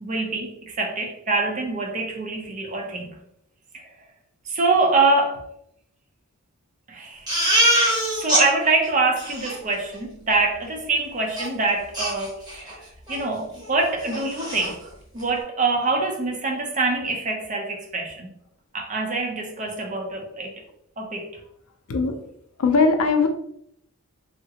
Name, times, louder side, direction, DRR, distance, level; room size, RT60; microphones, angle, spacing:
voice 1, 0.0-3.2 3.7-3.9 4.5-5.4 6.9-7.3 8.2-14.8 15.1-18.3 18.7-20.5 21.0-21.4, right 3 dB, 35° right, 2 dB, 0.5 m, -25 dB
Crying sobbing, 7.3-8.4 8.8-8.9 9.2-9.6 11.4-11.5 11.9-12.7 13.1-13.3 13.6-13.7 14.0-14.7, right 1 dB, 15° right, 0.9 m, -23 dB
voice 2, 22.6-23.3, left 4 dB, 75° left, 5 dB, 0.5 m, -19 dB
3.6 x 2.1 x 2.7 m, 0.73 s
head